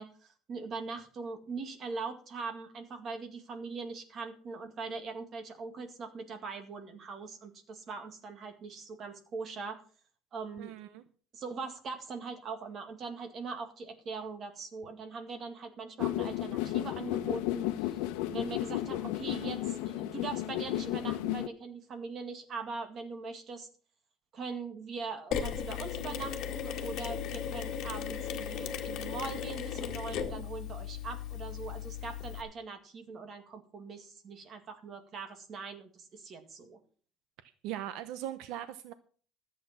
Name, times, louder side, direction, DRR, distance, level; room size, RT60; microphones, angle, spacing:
voice 1, 0.0-9.8 10.3-10.7 11.3-18.0 18.3-23.7 24.3-36.8, right 4 dB, 35° right, 6 dB, 2.0 m, -41 dB
voice 2, 10.6-11.0 37.4-38.9, right 12 dB, 70° right, 12 dB, 0.8 m, -40 dB
sound 1, 16.0-21.5, left 14 dB, 90° left, 0.9 m, -33 dB
Mechanisms, 25.3-32.4, left 8 dB, 50° left, 1.8 m, -36 dB
13.5 x 8.3 x 5.8 m, 0.43 s
cardioid pair, 160°, 0 cm